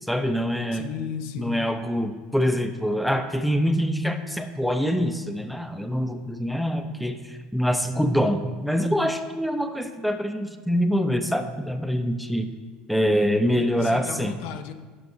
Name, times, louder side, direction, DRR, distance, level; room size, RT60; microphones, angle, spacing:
voice 1, 0.1-0.9 1.4-12.5 12.9-14.4, equal, ahead, 7 dB, 0.5 m, -25 dB
voice 2, 0.7-1.7 13.5-14.7, left 8 dB, 75° left, 10 dB, 0.4 m, -35 dB
11.0 x 5.4 x 2.7 m, 1.4 s
supercardioid pair, 90°, 4 cm